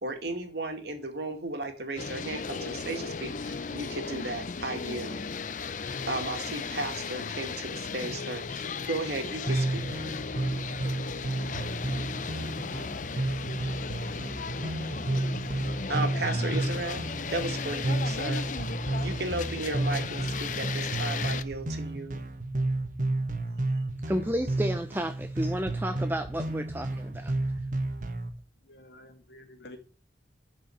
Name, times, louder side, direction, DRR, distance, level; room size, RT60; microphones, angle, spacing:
voice 1, 0.0-5.2 6.1-9.9 15.6-17.0 17.3-18.5 18.8-22.2, right 2 dB, 65° right, 2.3 m, -35 dB
sound 1, 2.0-21.4, left 5 dB, 45° left, 0.6 m, -36 dB
sound 2, 9.5-28.3, right 2 dB, 45° right, 1.4 m, -31 dB
voice 2, 24.1-27.5, equal, 10° right, 0.5 m, -32 dB
voice 3, 28.6-29.8, left 1 dB, 70° left, 2.4 m, -50 dB
11.5 x 5.1 x 7.9 m
head